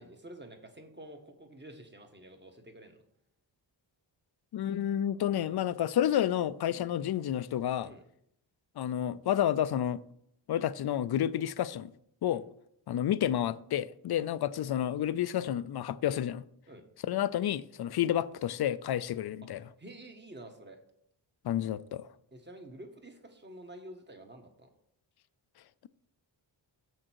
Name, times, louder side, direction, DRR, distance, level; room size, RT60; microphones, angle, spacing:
voice 1, 0.0-3.0 7.8-8.0 12.2-12.4 16.7-16.8 19.4-19.5 19.8-20.8 22.3-24.7, right 1 dB, 25° right, 1.3 m, -49 dB
voice 2, 4.5-7.9 8.8-10.0 10.5-11.9 12.2-12.4 12.9-16.4 17.1-19.6 21.4-22.1, left 11 dB, 60° left, 0.5 m, -30 dB
7.4 x 6.4 x 4.5 m
wide cardioid pair, 125°, 46 cm